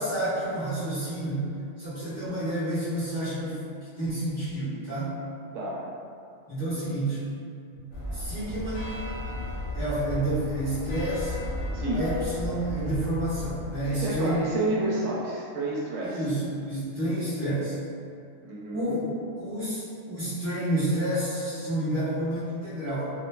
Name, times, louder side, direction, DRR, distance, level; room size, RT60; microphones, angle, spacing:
voice 1, 0.0-3.6 4.0-5.2 6.5-7.2 7.8-7.9 8.1-8.9 9.7-11.4 11.9-14.5 16.0-17.8 18.7-23.1, right 1 dB, 15° left, -15 dB, 0.9 m, -29 dB
sound 1, 7.9-14.4, left 1 dB, 60° left, 0.8 m, -35 dB
voice 2, 13.9-16.2 18.4-19.0, right 2 dB, 75° right, -5 dB, 0.9 m, -29 dB
2.9 x 2.5 x 2.2 m, 2.4 s
omnidirectional pair, 1.3 m